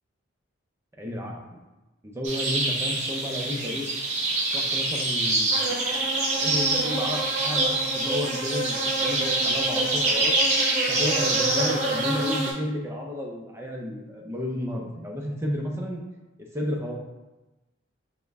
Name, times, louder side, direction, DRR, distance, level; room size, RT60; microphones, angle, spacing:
voice 1, 1.0-1.4 2.0-3.9 4.5-5.5 6.4-10.3 10.9-16.0 16.4-17.0, left 1 dB, 15° right, 0 dB, 0.5 m, -32 dB
sound 1, 2.2-12.5, right 2 dB, 35° right, 0.8 m, -25 dB
5.5 x 2.1 x 3.4 m, 1.1 s
head